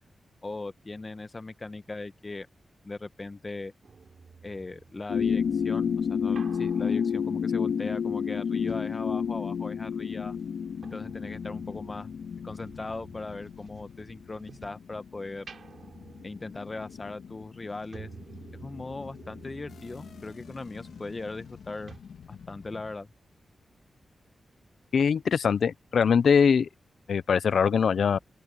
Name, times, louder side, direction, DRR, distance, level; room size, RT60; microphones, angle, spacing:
voice 1, 0.4-2.5 2.8-3.7 4.4-10.4 10.9-12.1 12.4-15.4 16.2-18.1 18.5-22.0 22.3-23.1, left 3 dB, 25° left, 1.1 m, -39 dB
sound 1, 3.8-9.8 10.1-14.9 15.3-21.6 21.9-22.0, right 5 dB, 55° right, 6.6 m, -52 dB
sound 2, 5.1-22.9, left 7 dB, 85° left, 1.8 m, -32 dB
voice 2, 24.9-26.7 27.1-28.2, left 6 dB, 65° left, 0.6 m, -22 dB
open air
wide cardioid pair, 145°, 0 cm